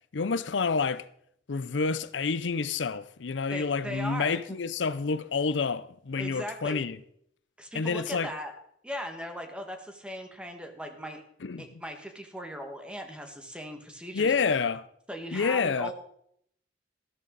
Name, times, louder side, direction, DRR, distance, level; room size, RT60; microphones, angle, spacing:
voice 1, 0.1-1.1 1.5-7.0 7.7-8.3 11.4-11.7 14.1-14.8 15.3-15.9, left 5 dB, 80° left, 0.6 m, -28 dB
voice 2, 3.5-4.6 6.2-6.8 7.6-8.5 8.8-11.2 11.6-14.6 15.1-15.9, equal, 5° right, 1.8 m, -38 dB
13.5 x 12.5 x 4.1 m
head